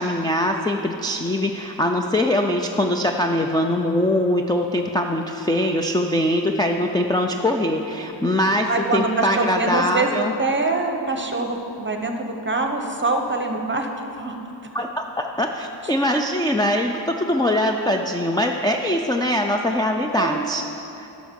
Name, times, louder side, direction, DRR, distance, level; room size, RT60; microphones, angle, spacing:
voice 1, 0.0-10.3 14.7-20.6 21.0-21.1, left 1 dB, 10° left, 2 dB, 0.4 m, -22 dB
voice 2, 8.7-13.9 14.2-14.4 20.1-20.5, right 3 dB, 25° right, 4 dB, 0.9 m, -24 dB
11.0 x 6.4 x 5.2 m, 2.9 s
wide cardioid pair, 90°, 45 cm